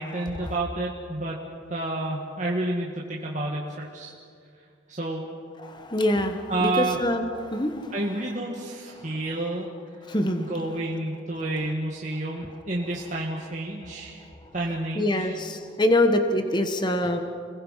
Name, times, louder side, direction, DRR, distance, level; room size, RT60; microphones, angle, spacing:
voice 1, 0.0-1.4 1.7-4.1 4.9-5.3 6.5-7.0 7.9-9.7 10.4-14.2 14.5-15.4 17.0-17.2, right 2 dB, 40° right, -3 dB, 2.1 m, -30 dB
voice 2, 5.6-7.9 10.1-10.5 14.9-17.2, left 1 dB, 20° left, 6 dB, 1.4 m, -24 dB
30.0 x 21.5 x 5.8 m, 2.3 s
head